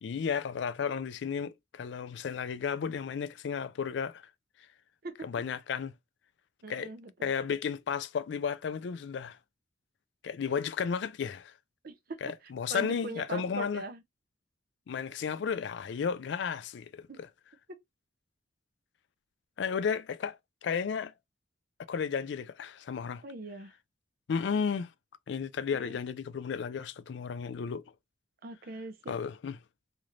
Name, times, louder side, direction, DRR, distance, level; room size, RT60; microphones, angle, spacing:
voice 1, 0.0-4.3 5.2-5.9 6.7-6.9 7.2-9.4 10.2-11.5 12.2-13.8 14.9-17.1 19.6-21.1 21.9-23.2 24.3-24.9 25.3-27.8 29.1-29.6, left 6 dB, 70° left, 0.4 m, -33 dB
voice 2, 6.6-7.3 11.8-12.2 12.7-14.0 17.1-17.2 23.2-23.7 25.7-26.0 28.4-29.1, right 3 dB, 55° right, 0.6 m, -41 dB
3.2 x 2.9 x 2.5 m
head